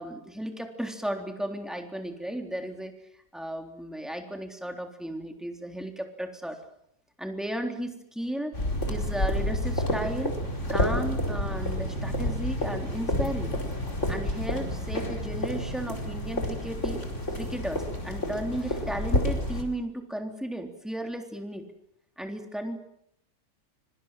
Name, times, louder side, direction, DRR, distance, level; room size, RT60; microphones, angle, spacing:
voice 1, 0.0-3.0 3.3-6.6 7.2-8.6 8.9-10.4 10.7-13.5 14.1-17.0 17.4-21.7 22.2-22.8, right 1 dB, ahead, 4 dB, 3.5 m, -34 dB
sound 1, 8.5-19.6, left 1 dB, 45° left, 5.2 m, -29 dB
25.5 x 25.0 x 7.6 m, 0.72 s
omnidirectional pair, 1.8 m